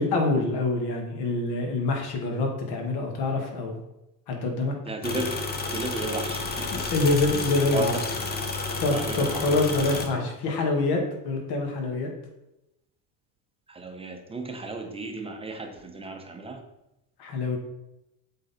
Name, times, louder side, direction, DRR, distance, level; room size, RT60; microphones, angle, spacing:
voice 1, 0.0-3.8 4.3-4.7 5.0-5.2 6.7-8.0 8.8-12.1 17.2-17.6, left 3 dB, 55° left, 2 dB, 1.9 m, -26 dB
voice 2, 4.8-5.4 5.7-7.0 7.3-7.4 7.7-8.1 8.9-9.8 13.7-16.6, right 3 dB, 10° right, 3 dB, 0.9 m, -34 dB
sound 1, 5.0-10.1, left 3 dB, 20° left, 0.9 m, -31 dB
7.9 x 4.0 x 4.2 m, 0.90 s
supercardioid pair, 115°, 46 cm